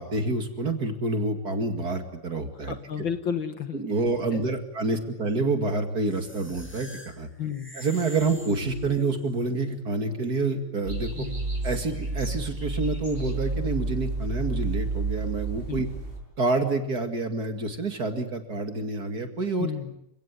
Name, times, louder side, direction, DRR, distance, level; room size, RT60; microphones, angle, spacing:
voice 1, 0.0-2.8 3.7-7.3 7.7-11.3 11.6-15.9 16.4-19.7, right 3 dB, 45° right, 6 dB, 2.7 m, -28 dB
voice 2, 2.7-3.8 4.3-4.5 7.4-7.7 11.2-11.4 15.7-15.8 19.6-20.0, left 8 dB, 60° left, 9 dB, 2.3 m, -32 dB
sound 1, 6.1-9.3, left 1 dB, 5° left, 2.7 m, -45 dB
sound 2, 8.0-13.2, left 1 dB, 20° left, 3.7 m, -43 dB
sound 3, 10.8-16.2, right 3 dB, 25° right, 8.0 m, -31 dB
29.5 x 17.5 x 9.7 m, 0.80 s
omnidirectional pair, 2.4 m